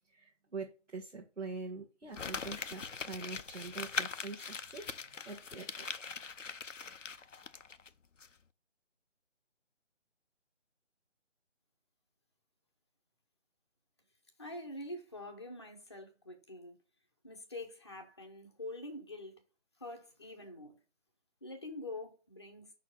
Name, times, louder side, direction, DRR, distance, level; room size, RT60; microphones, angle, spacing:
voice 1, 0.1-5.9, right 4 dB, 80° right, 1.7 m, -44 dB
Crumpling crinkling, 2.1-7.9 8.2-8.3, left 5 dB, 85° left, 0.6 m, -41 dB
voice 2, 14.4-16.7 17.2-19.4 19.8-20.8 21.4-22.7, left 1 dB, 20° left, 0.9 m, -45 dB
5.9 x 4.3 x 5.7 m
figure-of-eight pair, 155°, 36 cm